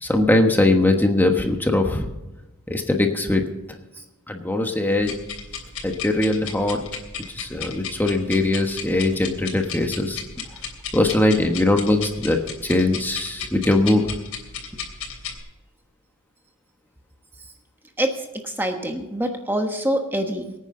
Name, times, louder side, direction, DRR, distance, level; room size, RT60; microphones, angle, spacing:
voice 1, 0.0-2.1 2.7-3.4 4.3-5.1 5.8-6.8 7.3-10.2 10.9-14.0, left 2 dB, 10° left, 3 dB, 1.2 m, -21 dB
sound 1, 5.0-15.4, left 6 dB, 80° left, 3.2 m, -35 dB
voice 2, 18.0-20.5, right 1 dB, 10° right, 4 dB, 1.2 m, -26 dB
23.5 x 9.5 x 3.9 m, 1.0 s
head